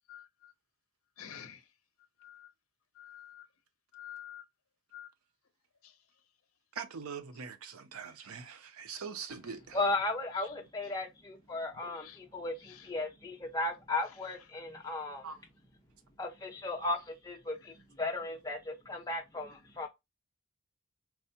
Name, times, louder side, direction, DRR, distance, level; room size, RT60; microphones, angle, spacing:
voice 1, 0.1-0.5 1.2-1.6 2.2-2.5 3.0-3.4 3.9-4.4 4.9-5.1 12.0-12.2, left 10 dB, 80° left, 0.6 m, -48 dB
voice 2, 6.8-9.8 15.2-15.4, right 6 dB, 85° right, 0.6 m, -42 dB
voice 3, 9.7-15.3 16.2-19.9, left 2 dB, 15° left, 0.9 m, -36 dB
4.6 x 2.1 x 2.7 m
head